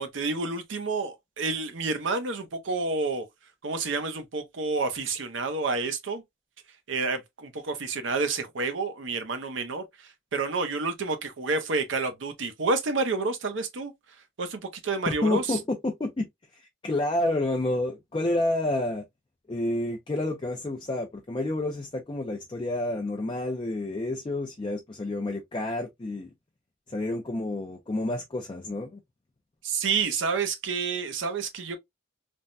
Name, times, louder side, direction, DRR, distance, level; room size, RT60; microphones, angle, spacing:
voice 1, 0.0-3.2 3.6-6.2 6.9-13.9 14.4-15.6 29.6-31.8, right 4 dB, 75° right, 0.7 m, -29 dB
voice 2, 15.1-16.3 16.8-19.0 19.5-26.3 26.9-29.0, left 2 dB, 25° left, 0.4 m, -29 dB
3.4 x 2.1 x 2.5 m
head